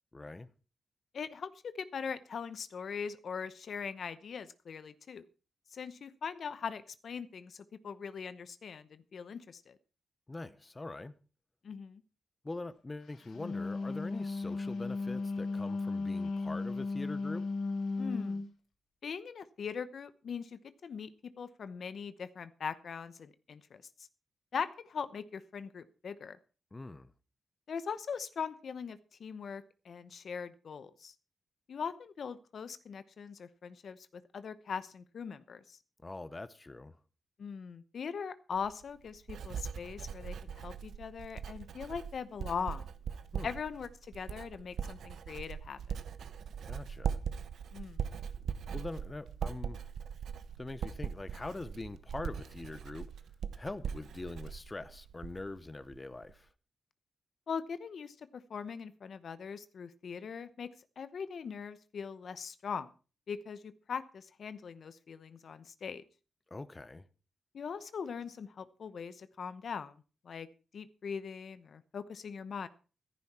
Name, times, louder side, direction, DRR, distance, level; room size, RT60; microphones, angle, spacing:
voice 1, 0.1-0.5 10.3-11.1 12.4-17.4 26.7-27.1 36.0-37.0 43.3-43.5 46.7-47.2 48.7-49.8 50.6-53.1 53.5-56.5 66.5-67.0, left 2 dB, 25° left, 0.8 m, -43 dB
voice 2, 1.1-5.2 5.7-9.8 11.6-12.0 18.0-18.4 19.0-21.1 21.4-23.8 24.5-26.4 27.7-31.1 31.7-35.8 37.4-42.8 43.4-43.9 44.1-46.0 47.7-48.0 57.5-60.7 61.0-62.9 63.3-66.0 67.5-70.0 70.2-70.5 70.7-72.7, left 6 dB, 65° left, 0.9 m, -41 dB
Wind instrument woodwind instrument, 13.2-18.5, left 3 dB, 85° left, 1.7 m, -35 dB
Writing, 38.5-55.6 55.9-56.3, right 7 dB, 80° right, 1.0 m, -40 dB
14.5 x 10.5 x 4.3 m
cardioid pair, 100°, 0 cm